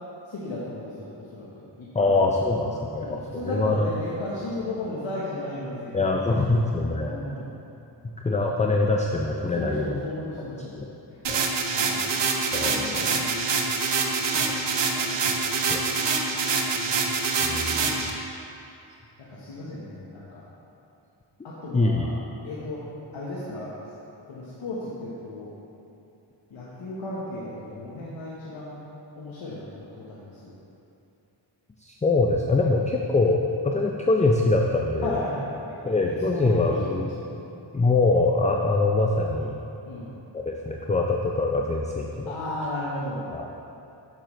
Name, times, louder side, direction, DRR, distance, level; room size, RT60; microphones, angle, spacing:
voice 1, 0.3-2.2 2.9-6.3 7.0-7.5 9.6-10.7 11.1-11.2 11.7-12.0 13.0-13.5 15.0-15.1 16.8-17.0 19.3-20.4 21.4-22.1 22.4-22.8 23.1-23.7 24.3-25.5 26.5-28.8 29.2-30.5 32.8-32.9 35.0-35.8 36.2-36.9 37.1-37.4 39.9-40.1 42.3-43.3, left 1 dB, 90° left, -7 dB, 1.1 m, -35 dB
voice 2, 1.9-3.9 5.9-7.2 8.2-10.1 10.4-10.5 10.8-10.9 11.3-11.5 12.5-13.3 14.2-14.6 15.3-15.4 15.7-16.0 17.4-18.0 21.7-22.1 31.8-35.2 35.8-37.1 37.7-39.6 40.3-42.3 43.3-43.5, left 3 dB, 15° left, 0 dB, 0.4 m, -24 dB
sound 1, 11.2-18.1, right 4 dB, 65° right, 0.8 m, -25 dB
8.9 x 6.4 x 3.1 m, 2.8 s
wide cardioid pair, 75°, 45 cm